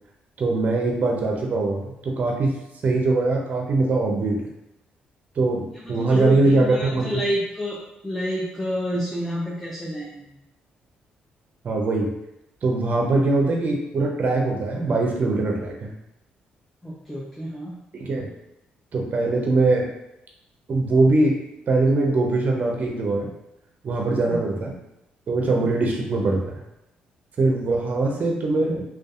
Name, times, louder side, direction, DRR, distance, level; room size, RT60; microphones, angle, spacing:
voice 1, 0.4-2.6 2.8-4.4 5.4-7.2 11.6-12.1 12.6-15.9 18.0-18.3 18.9-19.9 20.7-21.4 21.7-23.3 23.8-24.8 25.3-26.6 27.4-28.8, right 2 dB, 50° right, 0 dB, 0.5 m, -22 dB
voice 2, 5.8-10.3 16.8-17.7 24.3-24.4 25.6-25.7, equal, 5° left, -5 dB, 0.5 m, -29 dB
2.6 x 2.3 x 2.3 m, 0.86 s
supercardioid pair, 65°, 3 cm